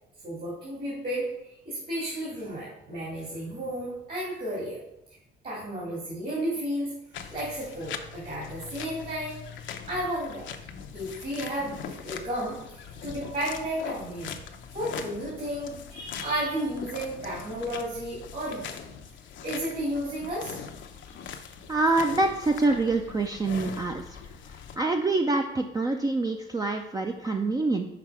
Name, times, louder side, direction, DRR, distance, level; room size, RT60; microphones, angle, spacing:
voice 1, 0.2-4.8 5.4-6.9 7.3-9.6 9.9-10.5 10.9-14.3 14.7-18.7 19.4-20.6 21.1-21.2, right 1 dB, 45° right, -5 dB, 2.2 m, -33 dB
sound 1, 7.1-24.8, left 7 dB, 70° left, 0.6 m, -41 dB
voice 2, 21.7-24.2 24.8-27.9, right 2 dB, 20° right, 3 dB, 0.4 m, -26 dB
5.9 x 3.9 x 4.8 m, 0.85 s
cardioid pair, 90°, 20 cm